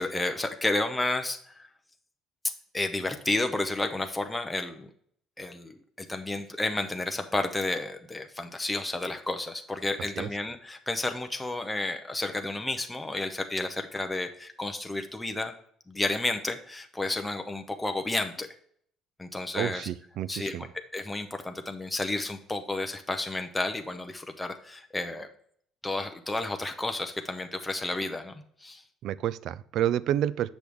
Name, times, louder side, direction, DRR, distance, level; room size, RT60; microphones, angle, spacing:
voice 1, 0.0-1.7 2.7-4.9 5.4-15.5 15.9-18.5 19.2-19.9 20.3-20.5 20.9-25.3 25.8-28.3 28.6-28.8, left 2 dB, 10° left, 5 dB, 0.6 m, -31 dB
voice 2, 19.6-20.7 29.0-30.5, right 11 dB, 60° right, 18 dB, 0.3 m, -29 dB
8.3 x 6.2 x 3.5 m, 0.63 s
cardioid pair, 135°, 0 cm